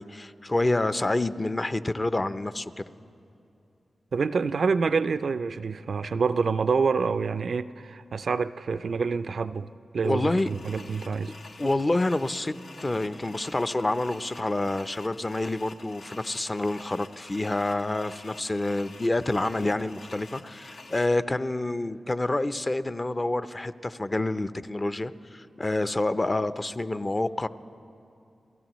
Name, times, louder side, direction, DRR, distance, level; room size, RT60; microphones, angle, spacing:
voice 1, 0.0-2.8 10.0-10.5 11.6-12.5 12.8-27.5, left 2 dB, 35° left, 0.6 m, -28 dB
voice 2, 4.1-9.7 9.9-11.3, right 5 dB, 70° right, 0.3 m, -27 dB
sound 1, 10.4-21.0, left 3 dB, 80° left, 0.8 m, -48 dB
28.5 x 16.5 x 3.1 m
cardioid pair, 40°, 0 cm